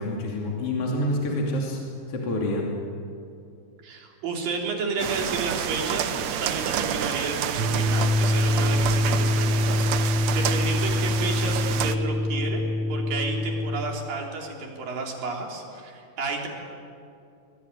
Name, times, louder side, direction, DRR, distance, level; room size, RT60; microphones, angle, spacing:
voice 1, 0.0-1.8 2.1-2.7, left 1 dB, 45° left, -1 dB, 3.6 m, -27 dB
voice 2, 3.8-12.6 12.9-16.5, right 4 dB, 85° right, 1 dB, 5.1 m, -32 dB
sound 1, 5.0-12.0, right 9 dB, 65° right, 1.9 m, -29 dB
sound 2, 7.6-13.8, left 1 dB, 45° right, 1.7 m, -24 dB
23.5 x 22.5 x 9.7 m, 2.5 s
omnidirectional pair, 3.9 m